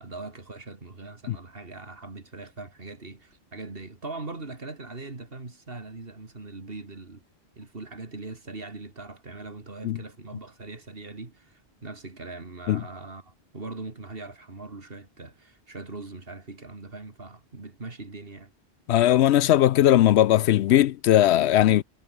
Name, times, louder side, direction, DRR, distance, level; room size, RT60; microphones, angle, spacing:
voice 1, 0.0-7.2 7.6-18.5, right 3 dB, 60° right, 2.9 m, -41 dB
voice 2, 18.9-21.8, left 12 dB, 75° left, 0.8 m, -19 dB
omnidirectional pair, 1.1 m